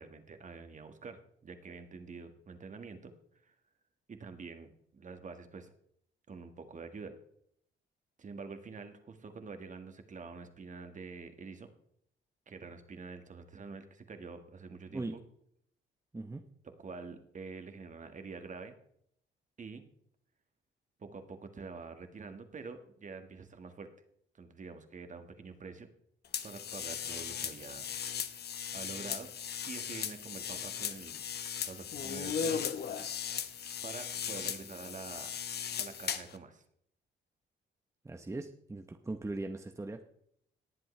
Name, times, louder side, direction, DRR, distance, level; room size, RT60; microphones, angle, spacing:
voice 1, 0.0-3.1 3.4-3.5 4.1-5.7 6.3-7.2 8.2-11.7 12.5-15.2 16.6-18.8 19.6-19.8 21.0-23.9 24.3-25.9 26.4-27.9 28.2-29.3 29.7-31.2 31.6-32.6 33.8-35.3 35.8-36.6, right 4 dB, 40° right, 7 dB, 1.6 m, -46 dB
voice 2, 14.9-15.2 16.1-16.4 38.0-40.0, right 2 dB, 15° right, 6 dB, 0.8 m, -39 dB
sound 1, 26.3-36.4, left 8 dB, 55° left, 0.9 m, -37 dB
19.0 x 7.7 x 3.2 m, 0.69 s
cardioid pair, 90°, 20 cm